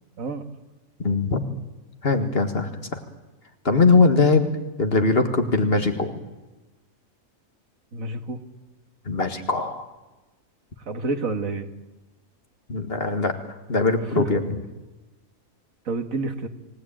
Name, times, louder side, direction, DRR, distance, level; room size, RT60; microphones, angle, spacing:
voice 1, 1.0-1.4 2.0-3.0 3.7-4.5 4.8-6.1 9.1-9.9 12.7-13.4 13.7-14.6, left 3 dB, 45° left, 6 dB, 2.0 m, -21 dB
voice 2, 7.9-8.4 10.9-11.7 14.2-14.3 15.9-16.5, right 3 dB, 75° right, 7 dB, 2.1 m, -28 dB
28.5 x 17.5 x 9.0 m, 1.1 s
omnidirectional pair, 1.4 m